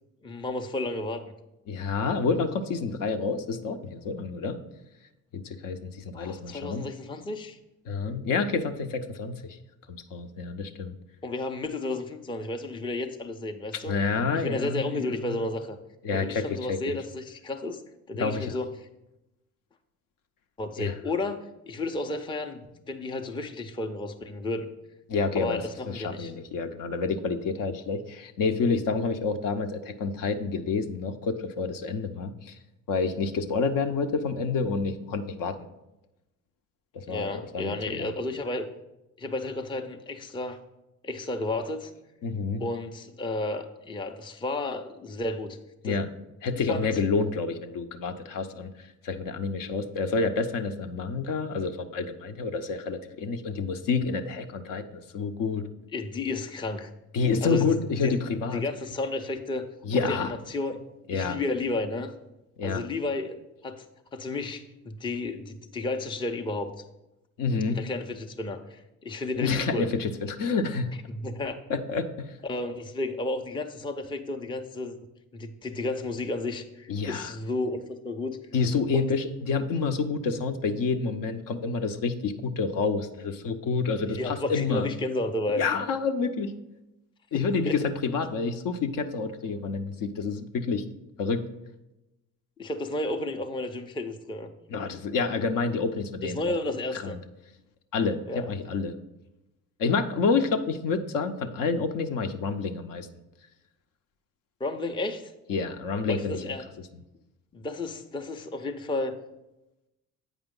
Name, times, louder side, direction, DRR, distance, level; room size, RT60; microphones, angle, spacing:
voice 1, 0.2-1.2 6.1-7.6 11.2-14.0 14.3-15.8 16.1-17.8 18.1-18.7 20.6-24.7 25.4-26.3 37.1-38.7 39.2-40.6 41.0-41.9 42.6-45.6 45.8-46.0 46.7-47.0 55.9-56.9 57.4-58.2 58.5-59.7 60.1-60.8 61.1-62.1 62.6-63.4 63.6-63.9 64.1-66.7 67.7-69.9 71.1-71.6 72.4-75.0 75.3-78.4 78.9-79.1 84.1-85.6 87.3-87.8 92.6-94.5 96.2-97.2 98.3-98.4 104.6-105.3 106.1-106.6 107.5-109.1, left 2 dB, 10° left, 5 dB, 0.6 m, -32 dB
voice 2, 1.7-4.6 5.3-6.9 7.9-9.6 9.9-10.9 13.9-15.0 15.3-15.4 16.0-17.0 18.2-18.5 20.8-20.9 25.1-32.6 32.9-35.7 36.9-38.1 42.2-42.6 45.8-46.1 46.4-48.7 49.0-55.7 57.1-58.6 59.8-60.3 61.1-61.4 62.6-62.8 67.4-67.8 69.4-70.9 71.7-72.4 76.9-77.3 78.5-84.9 85.6-86.5 87.3-90.8 91.2-91.4 94.7-96.4 96.9-97.2 97.9-98.9 99.8-103.1 105.5-106.4, left 4 dB, 55° left, 7 dB, 0.7 m, -28 dB
8.1 x 5.0 x 3.8 m, 0.94 s
hypercardioid pair, 55°, 41 cm